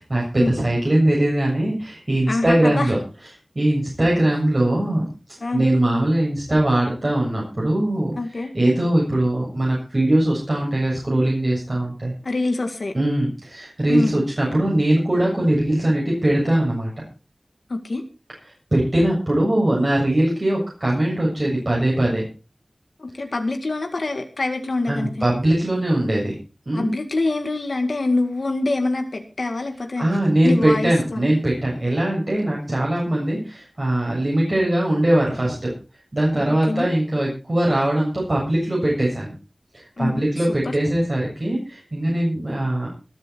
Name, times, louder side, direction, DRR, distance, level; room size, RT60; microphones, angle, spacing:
voice 1, 0.0-3.0 3.6-5.0 5.5-12.1 12.9-17.1 18.7-22.2 24.9-26.3 26.7-26.9 30.0-35.7 36.1-39.3 39.7-42.9, right 1 dB, 45° right, -3 dB, 7.4 m, -21 dB
voice 2, 2.3-2.9 5.4-5.6 8.2-8.5 12.2-12.9 13.9-14.1 17.7-18.0 23.0-25.3 26.7-30.0 30.4-31.3 36.7-36.9 40.0-40.7, left 2 dB, 85° left, 5 dB, 2.0 m, -25 dB
21.0 x 9.1 x 4.6 m, 0.33 s
wide cardioid pair, 60°, 0 cm